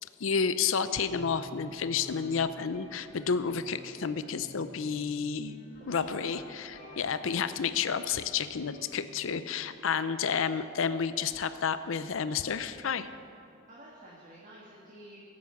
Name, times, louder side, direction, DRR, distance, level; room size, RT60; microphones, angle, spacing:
voice 1, 0.2-5.5 5.9-13.1, left 6 dB, 65° left, 12 dB, 0.5 m, -30 dB
sound 1, 1.1-10.9, left 1 dB, 40° left, 1.3 m, -52 dB
voice 2, 5.8-7.0 9.8-10.0 13.7-15.2, right 1 dB, 35° right, -5 dB, 1.7 m, -50 dB
17.0 x 8.3 x 5.8 m, 2.6 s
head